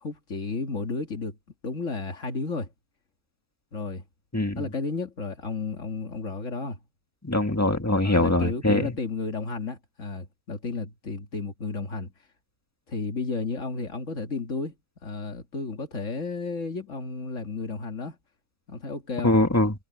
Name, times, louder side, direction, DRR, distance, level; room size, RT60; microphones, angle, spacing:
voice 1, 0.0-1.4 1.6-2.7 3.7-4.0 4.6-6.8 8.0-12.1 12.9-14.8 15.0-18.2 18.7-19.4, left 4 dB, 40° left, 2.3 m, -32 dB
voice 2, 4.3-4.6 7.2-8.9 19.2-19.7, left 1 dB, 10° left, 1.4 m, -22 dB
omnidirectional pair, 2.1 m